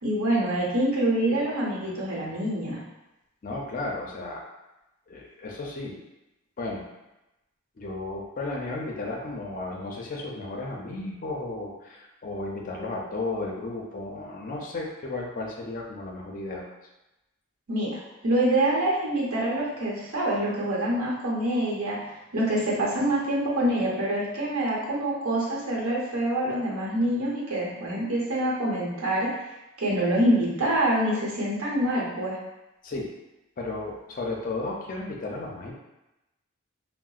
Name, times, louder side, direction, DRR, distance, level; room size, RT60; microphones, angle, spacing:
voice 1, 0.0-2.8 17.7-22.0 22.3-29.3 29.8-32.4, right 1 dB, 90° right, -4 dB, 0.9 m, -26 dB
voice 2, 3.4-4.5 5.1-6.0 6.6-6.9 7.8-16.6 32.8-33.1 33.6-35.7, left 2 dB, 40° left, -1 dB, 0.4 m, -34 dB
3.8 x 2.0 x 2.4 m, 0.96 s
head